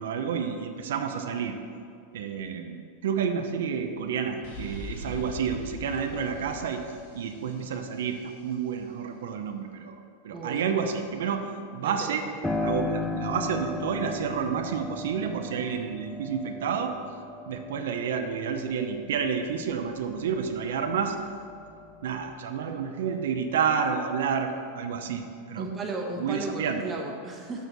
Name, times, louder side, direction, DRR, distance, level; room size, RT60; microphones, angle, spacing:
voice 1, 0.0-1.6 2.1-2.8 3.0-6.8 7.1-10.0 10.2-11.4 11.7-12.2 12.6-16.9 17.5-21.2 22.0-25.8 26.2-26.8, right 6 dB, 85° right, 6 dB, 0.7 m, -30 dB
sound 1, 4.4-8.2, left 2 dB, 60° left, 1.8 m, -41 dB
voice 2, 10.3-10.7 11.8-12.2 13.0-13.2 25.6-27.7, right 2 dB, 15° right, 0 dB, 1.0 m, -35 dB
Piano, 12.4-20.9 21.3-22.3, left 2 dB, 5° left, 0.4 m, -36 dB
6.9 x 4.4 x 6.7 m, 2.4 s
supercardioid pair, 160°, 0 cm